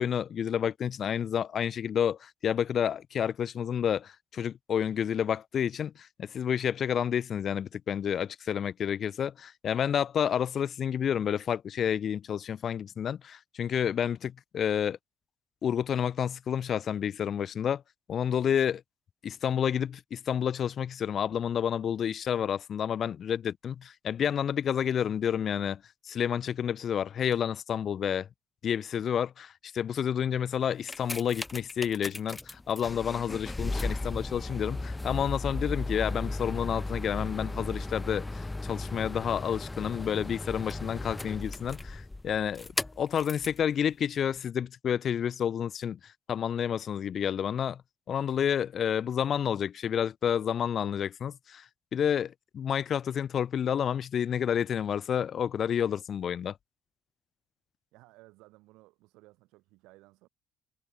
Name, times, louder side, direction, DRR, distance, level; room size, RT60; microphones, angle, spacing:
voice 1, 0.0-15.0 15.6-17.8 18.1-18.8 19.2-25.8 26.1-28.3 28.6-42.7 43.0-46.0 46.3-47.8 48.1-51.6 51.9-56.5, left 8 dB, 55° left, 0.6 m, -30 dB
sound 1, 30.6-43.6 44.4-44.5, left 2 dB, 15° left, 0.3 m, -36 dB
voice 2, 57.9-60.3, right 21 dB, 80° right, 3.7 m, -57 dB
hypercardioid pair, 55°, 0 cm